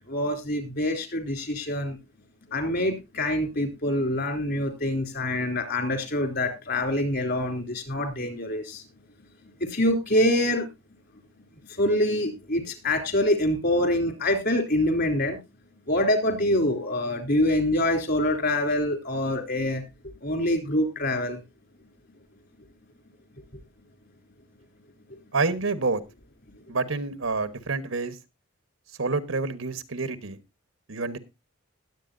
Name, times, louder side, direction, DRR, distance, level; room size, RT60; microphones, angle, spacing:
voice 1, 0.1-2.0 2.5-8.8 9.6-10.7 11.7-15.4 15.9-19.8 20.2-21.4, left 1 dB, 55° left, 3.3 m, -25 dB
voice 2, 25.3-26.0 26.7-28.2 29.0-30.4 30.9-31.2, right 3 dB, 85° right, 1.2 m, -28 dB
20.0 x 8.1 x 2.6 m
head